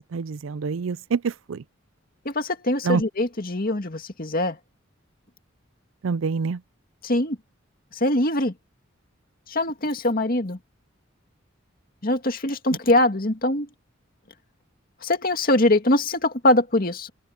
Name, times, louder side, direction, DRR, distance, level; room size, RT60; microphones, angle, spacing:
voice 1, 0.1-1.6 2.8-3.0 6.0-6.6, right 5 dB, 75° right, 0.4 m, -26 dB
voice 2, 2.3-4.6 7.0-7.4 8.0-8.5 9.5-10.6 12.0-13.7 15.0-17.1, left 1 dB, 45° left, 2.2 m, -22 dB
open air
head